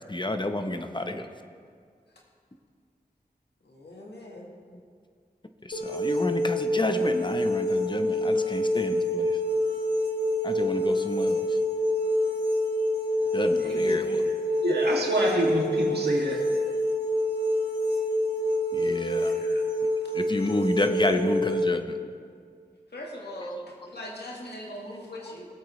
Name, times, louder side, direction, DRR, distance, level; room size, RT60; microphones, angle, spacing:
voice 1, 0.1-1.3 5.6-9.4 10.4-11.5 13.3-14.2 18.7-19.4 20.1-21.9, left 1 dB, 30° left, 7 dB, 0.8 m, -30 dB
voice 2, 3.6-4.5 13.1-14.4 19.1-19.6 22.9-25.5, equal, 90° left, -2 dB, 1.6 m, -41 dB
sound 1, 5.7-21.6, left 1 dB, 75° left, 1.3 m, -26 dB
voice 3, 13.6-14.0 14.6-16.4, right 1 dB, 80° right, -2 dB, 2.0 m, -27 dB
18.5 x 8.2 x 3.2 m, 2.1 s
wide cardioid pair, 40°, 17 cm